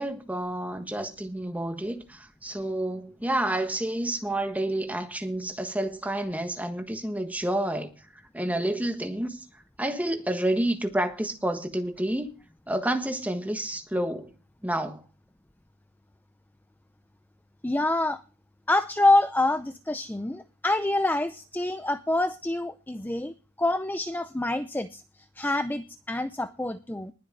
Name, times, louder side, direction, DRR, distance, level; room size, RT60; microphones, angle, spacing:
voice 1, 0.0-7.9 8.3-9.4 9.8-12.4 12.7-14.3 14.6-15.0, right 1 dB, 10° right, 1.4 m, -29 dB
voice 2, 17.6-18.2 18.7-25.0 25.4-27.1, left 2 dB, 10° left, 0.5 m, -26 dB
20.0 x 7.9 x 3.9 m
head